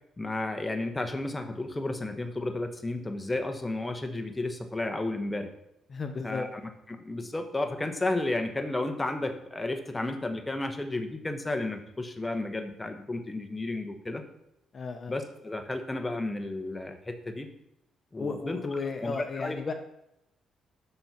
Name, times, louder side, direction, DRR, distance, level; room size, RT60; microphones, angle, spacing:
voice 1, 0.2-5.5 6.2-6.5 6.9-14.2 15.1-17.5 18.1-19.6, left 2 dB, 15° left, 7 dB, 1.1 m, -32 dB
voice 2, 5.9-6.5 14.7-15.1 18.2-19.7, left 4 dB, 40° left, 6 dB, 0.9 m, -34 dB
12.5 x 4.4 x 5.6 m, 0.82 s
cardioid pair, 90°, 0 cm